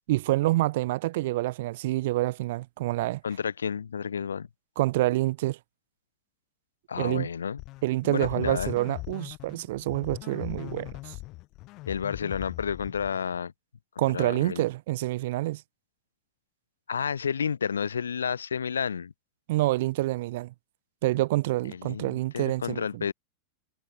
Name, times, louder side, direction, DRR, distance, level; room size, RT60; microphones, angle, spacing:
voice 1, 0.1-3.2 4.8-5.6 7.0-7.3 7.8-11.1 14.0-15.6 19.5-20.5 21.0-23.1, right 17 dB, 55° right, 0.7 m, -27 dB
voice 2, 3.2-4.5 6.9-7.6 8.0-8.7 11.9-13.5 14.0-14.6 16.9-19.1 21.7-23.1, left 7 dB, 70° left, 3.8 m, -31 dB
sound 1, 7.6-13.4, left 20 dB, 40° left, 5.0 m, -40 dB
figure-of-eight pair, 90°, 0 cm